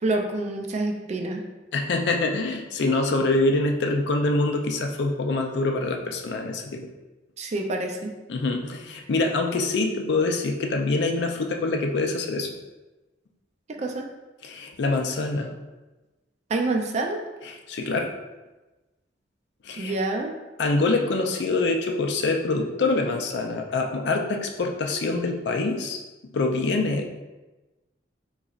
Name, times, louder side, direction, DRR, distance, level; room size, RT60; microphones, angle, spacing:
voice 1, 0.0-1.4 7.4-8.1 13.8-14.0 16.5-17.2 19.8-20.3, right 2 dB, 40° right, 3 dB, 0.4 m, -27 dB
voice 2, 1.7-6.8 8.3-12.5 14.4-15.5 17.4-18.1 19.6-19.9 20.6-26.0 26.3-27.2, left 3 dB, 65° left, 3 dB, 0.4 m, -25 dB
3.8 x 3.0 x 2.4 m, 1.1 s
head